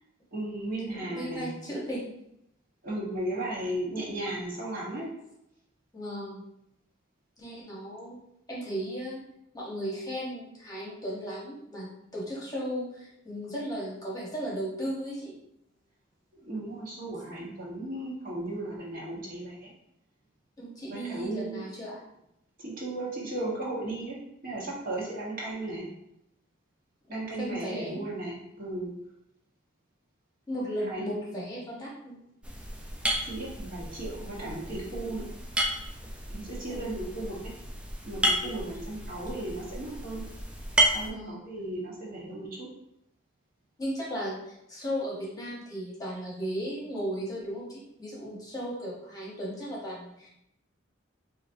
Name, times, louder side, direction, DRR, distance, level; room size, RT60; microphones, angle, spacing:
voice 1, 0.3-1.5 2.8-5.1 16.4-19.7 20.9-21.6 22.6-24.2 24.4-25.9 27.1-28.9 30.9-31.1 33.3-35.3 36.3-37.4 38.0-40.2 40.9-42.7, right 1 dB, 45° right, -6 dB, 1.3 m, -35 dB
voice 2, 0.9-2.1 5.9-6.4 7.4-8.2 8.5-9.2 9.5-15.3 17.3-17.4 20.6-22.0 27.1-28.1 30.5-32.2 36.7-36.9 41.1-41.4 43.8-50.3, equal, 20° left, -5 dB, 1.0 m, -36 dB
sound 1, 32.4-41.1, right 1 dB, 5° right, 0.4 m, -32 dB
4.9 x 2.7 x 2.7 m, 0.80 s
head